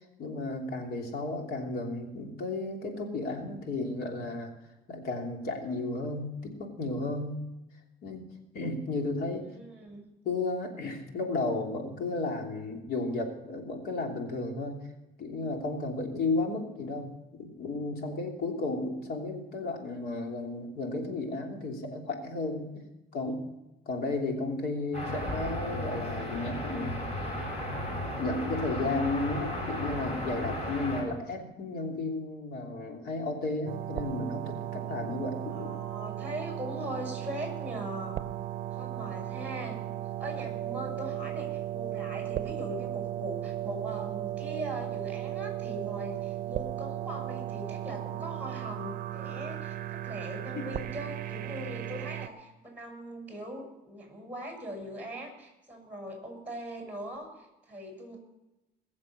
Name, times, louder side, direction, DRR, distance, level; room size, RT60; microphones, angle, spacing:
voice 1, 0.2-4.5 4.9-7.4 8.0-8.2 8.5-9.5 10.2-14.8 15.2-22.7 23.1-23.4 23.8-27.0 28.2-35.7 50.5-50.6, left 2 dB, 65° left, 2 dB, 3.2 m, -33 dB
voice 2, 9.5-10.0 35.5-38.2 38.7-39.8 40.2-58.2, equal, 10° right, 1 dB, 6.3 m, -41 dB
sound 1, 24.9-31.0, left 1 dB, 35° left, 7.2 m, -34 dB
sound 2, 33.7-52.3, right 13 dB, 60° right, 0.7 m, -36 dB
21.0 x 7.3 x 6.4 m, 0.95 s
cardioid pair, 110°, 17 cm